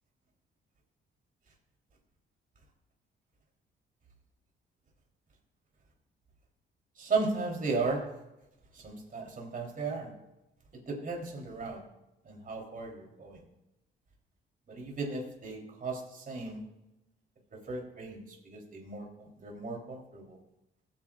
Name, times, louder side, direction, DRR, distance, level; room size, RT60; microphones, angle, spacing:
voice 1, 7.0-8.1 8.7-10.1 10.9-11.8 12.2-13.4 14.7-16.6 17.6-20.4, right 3 dB, 45° right, 0 dB, 3.5 m, -35 dB
23.0 x 8.8 x 2.5 m, 0.92 s
cardioid pair, 90°, 20 cm